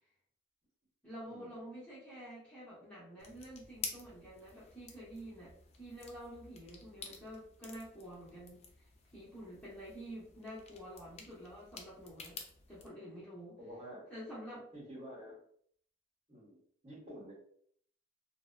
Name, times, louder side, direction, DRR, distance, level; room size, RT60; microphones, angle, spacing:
voice 1, 1.0-8.9 9.1-12.4 12.7-13.6 14.1-14.7, equal, 5° left, -9 dB, 0.7 m, -49 dB
sound 1, 3.2-12.9, left 4 dB, 35° left, 0.3 m, -50 dB
voice 2, 13.6-14.1 14.7-15.4 16.3-16.6 16.8-17.3, equal, 35° right, -6 dB, 1.2 m, -49 dB
2.7 x 2.1 x 2.2 m, 0.63 s
head